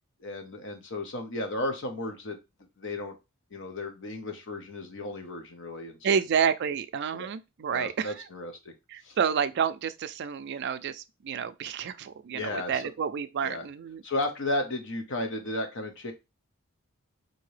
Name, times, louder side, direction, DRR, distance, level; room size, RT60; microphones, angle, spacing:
voice 1, 0.2-2.4 2.8-3.2 3.5-6.0 7.1-7.3 7.7-8.7 9.0-9.2 12.3-12.8 13.4-13.7 14.0-16.1, left 1 dB, 60° left, 0.8 m, -34 dB
voice 2, 6.0-8.1 8.9-14.0, right 7 dB, 50° right, 0.4 m, -29 dB
3.7 x 2.7 x 3.1 m
head